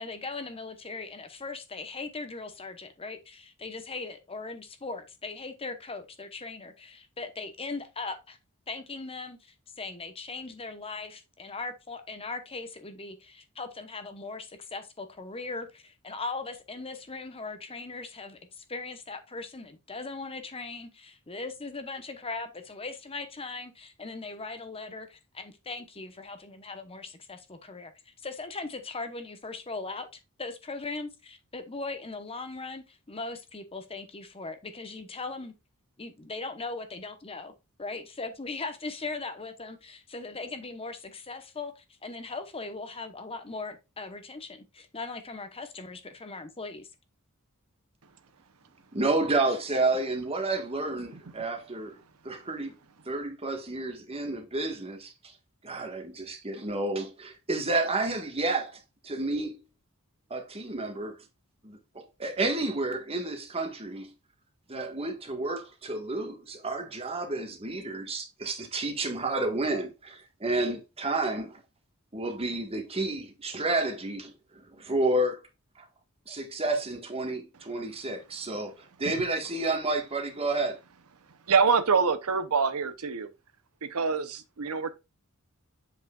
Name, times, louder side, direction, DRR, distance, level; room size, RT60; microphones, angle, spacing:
voice 1, 0.0-8.4 8.7-35.5 36.0-37.5 37.8-46.9, left 3 dB, 25° left, 1.0 m, -39 dB
voice 2, 48.9-52.0 52.2-52.8 53.0-55.1 55.6-59.7 60.3-61.2 61.6-64.1 64.7-71.6 72.1-75.4 75.8-75.9 76.3-80.8, right 2 dB, 25° right, 1.5 m, -30 dB
voice 3, 81.5-83.3 83.8-84.9, right 5 dB, 75° right, 0.8 m, -25 dB
7.6 x 5.5 x 2.4 m
head